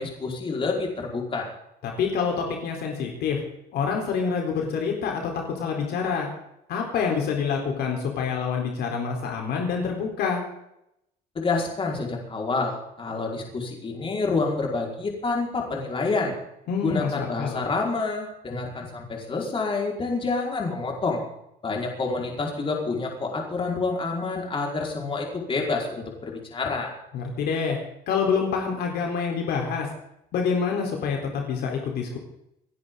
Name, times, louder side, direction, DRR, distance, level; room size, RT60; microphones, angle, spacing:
voice 1, 0.0-1.5 11.3-16.3 16.8-21.2 21.6-26.9, left 3 dB, 30° left, -1 dB, 5.1 m, -28 dB
voice 2, 1.8-3.4 3.7-6.3 6.7-10.4 16.7-17.6 27.1-27.8 28.1-29.9 30.3-32.2, left 6 dB, 75° left, 1 dB, 4.1 m, -27 dB
29.0 x 11.0 x 4.0 m, 0.81 s
cardioid pair, 110°, 17 cm